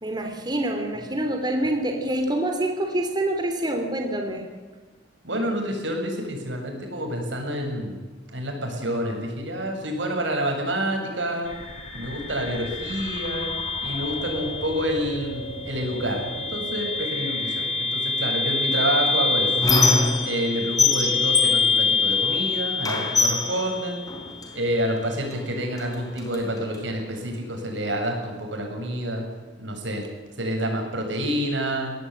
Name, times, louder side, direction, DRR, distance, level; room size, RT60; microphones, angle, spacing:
voice 1, 0.0-4.4, right 1 dB, 25° right, 4 dB, 2.9 m, -26 dB
voice 2, 5.2-8.0 8.3-11.5 11.9-13.5 13.8-19.7 20.2-24.0 24.5-29.2 29.6-30.0 30.4-31.9, equal, 85° right, 2 dB, 7.6 m, -28 dB
sound 1, 11.5-24.5, left 4 dB, 35° left, 5.7 m, -27 dB
Squeak, 18.7-20.5 20.8-22.4 22.8-24.5 25.3-25.4 25.8-26.8, left 3 dB, 20° left, 4.3 m, -24 dB
23.5 x 18.5 x 8.6 m, 1.3 s
head